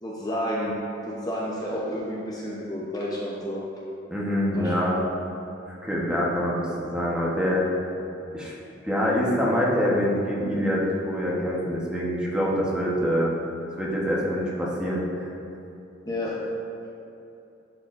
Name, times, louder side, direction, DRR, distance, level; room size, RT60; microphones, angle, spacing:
voice 1, 0.0-3.6 4.6-4.7 16.1-16.3, equal, 20° left, -5 dB, 0.7 m, -30 dB
voice 2, 4.1-5.0 5.8-7.6 8.3-8.5 8.8-13.3 13.8-15.3, equal, 5° right, -5 dB, 0.9 m, -25 dB
11.0 x 4.7 x 2.5 m, 2.8 s
head